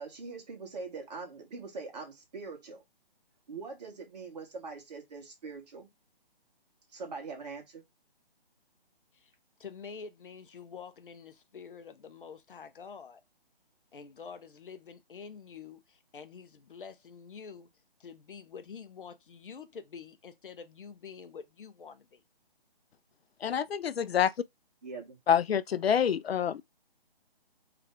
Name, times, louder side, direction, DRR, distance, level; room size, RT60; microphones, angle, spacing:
voice 1, 0.0-2.8 3.5-5.9 6.9-7.8 24.8-25.2, right 4 dB, 45° right, 1.6 m, -42 dB
voice 2, 9.6-13.2 13.9-17.7 18.0-22.2, left 6 dB, 60° left, 0.7 m, -47 dB
voice 3, 23.4-24.3 25.3-26.6, left 8 dB, 85° left, 0.5 m, -27 dB
3.4 x 3.3 x 3.6 m
hypercardioid pair, 160°, 30 cm